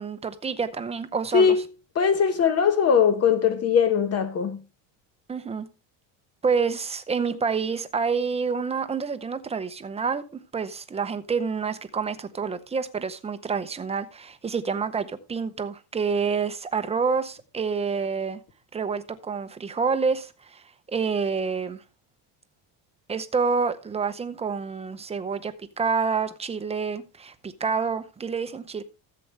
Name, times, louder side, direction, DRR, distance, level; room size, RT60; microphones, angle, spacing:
voice 1, 0.0-1.5 5.3-5.7 6.4-10.2 10.5-18.4 18.7-20.6 20.9-21.8 23.1-28.8, right 5 dB, 15° right, 0.7 m, -28 dB
voice 2, 1.3-4.6, left 7 dB, 35° left, 0.9 m, -21 dB
14.0 x 7.7 x 3.3 m
cardioid pair, 140°, 44 cm